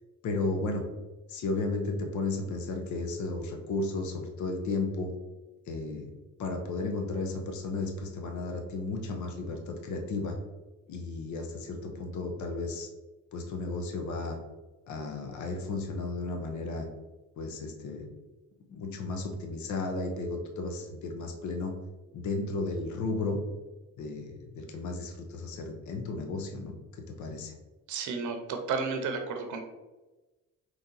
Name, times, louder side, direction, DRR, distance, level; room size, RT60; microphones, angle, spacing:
voice 1, 0.2-0.8 1.3-5.1 5.7-6.1 6.4-10.4 10.9-12.9 13.3-14.4 14.9-16.9 17.4-18.1 18.7-21.7 22.1-23.4 24.0-26.7 27.1-27.5, left 3 dB, 70° left, 3 dB, 0.8 m, -34 dB
voice 2, 27.9-29.6, right 5 dB, 80° right, 5 dB, 0.7 m, -32 dB
4.0 x 3.1 x 3.8 m, 1.1 s
cardioid pair, 90°, 30 cm